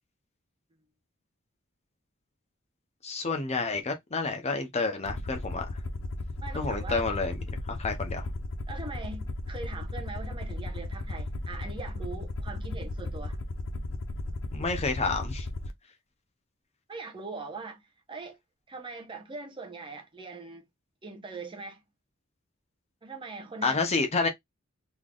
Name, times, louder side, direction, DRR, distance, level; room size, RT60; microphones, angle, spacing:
voice 1, 3.0-5.7 6.5-7.4 7.7-8.2 14.5-15.5 23.6-24.3, left 3 dB, 30° left, 0.8 m, -29 dB
Aircraft, 5.1-15.7, left 2 dB, 70° left, 0.6 m, -35 dB
voice 2, 6.4-7.1 8.7-13.4 16.9-17.8 18.1-18.4 18.7-20.6 21.0-21.8 23.0-23.8, right 3 dB, 25° right, 0.9 m, -41 dB
3.8 x 3.3 x 2.4 m
head